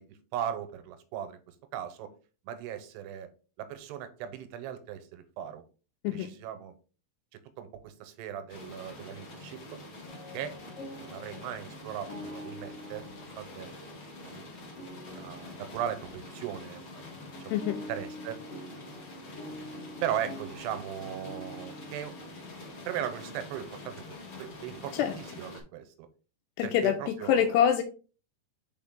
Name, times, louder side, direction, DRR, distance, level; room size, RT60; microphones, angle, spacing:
voice 1, 0.0-2.1 2.5-3.3 3.6-5.6 6.1-6.7 7.6-9.6 10.3-10.6 10.8-13.7 14.2-14.5 15.1-17.1 17.4-18.4 20.0-22.1 22.9-26.1 26.6-27.6, right 10 dB, 90° right, 10 dB, 2.8 m, -38 dB
sound 1, 8.5-25.6, left 2 dB, 40° left, 1.7 m, -46 dB
sound 2, 10.1-24.3, left 1 dB, 60° left, 0.8 m, -47 dB
voice 2, 26.6-27.8, left 9 dB, 85° left, 4 dB, 2.7 m, -25 dB
5.9 x 4.4 x 3.7 m, 0.36 s
omnidirectional pair, 4.7 m